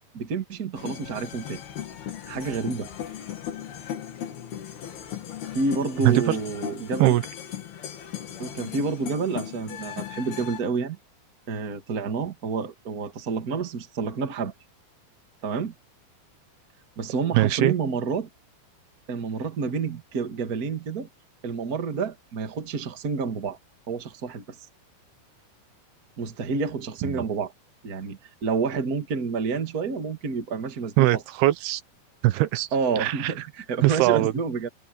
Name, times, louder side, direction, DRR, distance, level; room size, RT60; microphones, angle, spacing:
voice 1, 0.1-1.6 2.3-2.9 5.5-7.2 8.4-11.0 11.5-14.5 15.4-15.7 17.0-18.3 19.1-21.1 21.4-23.6 23.9-24.5 26.2-27.5 27.8-31.2 32.7-34.7, right 5 dB, 35° right, 1.7 m, -29 dB
sound 1, 0.8-10.6, left 10 dB, 80° left, 4.5 m, -37 dB
voice 2, 17.3-17.7 27.1-27.2 31.0-31.8 32.2-32.7 33.0-33.3 33.8-34.3, right 17 dB, 85° right, 2.9 m, -21 dB
omnidirectional pair, 4.4 m